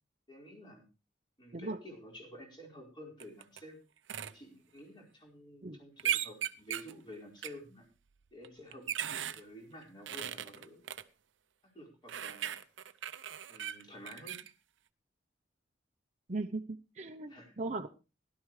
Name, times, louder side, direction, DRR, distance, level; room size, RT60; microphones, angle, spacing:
voice 1, 0.3-0.8 1.4-3.8 4.2-7.9 8.3-8.9 9.3-10.8 11.6-12.6 13.5-14.5 17.3-17.5, equal, 25° left, -1 dB, 4.8 m, -51 dB
sound 1, 3.2-3.6 4.1-4.3 6.0-6.9 7.4-7.5 8.4-9.4 10.1-11.0 12.1-14.5, right 10 dB, 85° right, 0.6 m, -37 dB
voice 2, 16.3-17.9, right 2 dB, 40° right, 3 dB, 0.8 m, -38 dB
16.5 x 12.0 x 3.2 m, 0.30 s
head